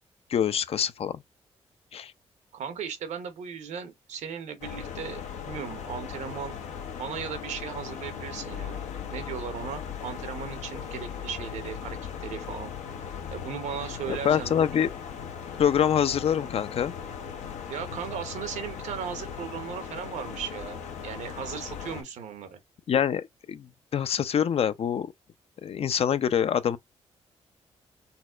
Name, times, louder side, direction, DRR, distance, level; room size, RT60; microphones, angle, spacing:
voice 1, 0.3-1.2 1.9-2.1 14.1-14.9 15.6-16.9 22.9-25.1 25.6-26.8, left 8 dB, 55° left, 0.4 m, -25 dB
voice 2, 2.5-6.6 7.0-12.7 13.3-14.7 17.7-22.6, right 7 dB, 85° right, 0.9 m, -37 dB
sound 1, 4.6-22.0, left 7 dB, 85° left, 0.8 m, -38 dB
4.0 x 2.1 x 2.4 m
cardioid pair, 70°, 12 cm